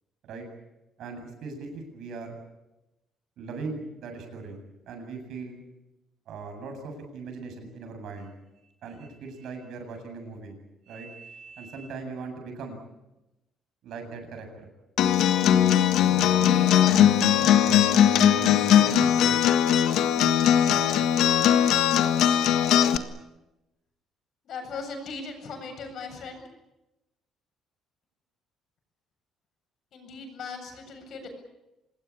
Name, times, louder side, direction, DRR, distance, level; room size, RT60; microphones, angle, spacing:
voice 1, 1.0-2.4 3.4-5.6 6.3-8.3 8.8-10.6 10.9-12.8 13.8-14.7 16.0-19.5, right 4 dB, 65° right, 5 dB, 8.0 m, -39 dB
Acoustic guitar, 15.0-23.0, left 10 dB, 70° left, 1.6 m, -20 dB
voice 2, 24.4-26.4 29.9-31.3, left 4 dB, 55° left, 5 dB, 7.8 m, -38 dB
26.5 x 20.5 x 8.6 m, 0.95 s
cardioid pair, 140°, 0 cm